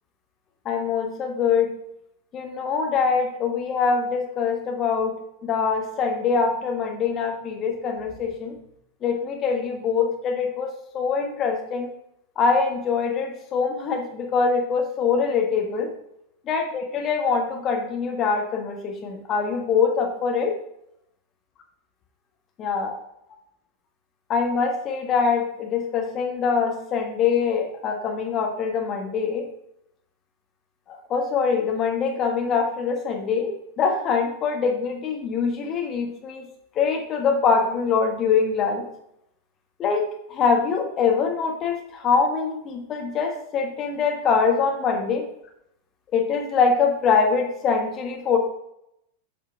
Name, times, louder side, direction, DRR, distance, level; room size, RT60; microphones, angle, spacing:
voice 1, 0.6-1.7 2.3-5.1 5.4-8.5 9.0-11.9 12.4-15.9 16.5-20.6 22.6-23.0 24.3-29.5 30.9-36.4 36.7-38.9 39.8-45.2 46.1-48.4, left 5 dB, 30° left, 2 dB, 1.4 m, -24 dB
8.3 x 5.5 x 3.5 m, 0.77 s
figure-of-eight pair, 90°, 0 cm